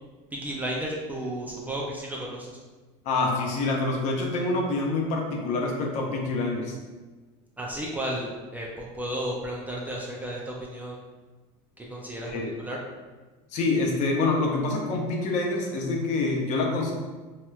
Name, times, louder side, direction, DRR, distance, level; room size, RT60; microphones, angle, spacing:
voice 1, 0.3-2.5 7.6-11.0 11.8-12.3 12.6-12.8, right 1 dB, 10° right, -3 dB, 0.3 m, -33 dB
voice 2, 3.0-6.8 12.2-12.5 13.5-16.9, left 3 dB, 50° left, 1 dB, 0.6 m, -26 dB
3.2 x 2.8 x 2.3 m, 1.3 s
supercardioid pair, 140°, 16 cm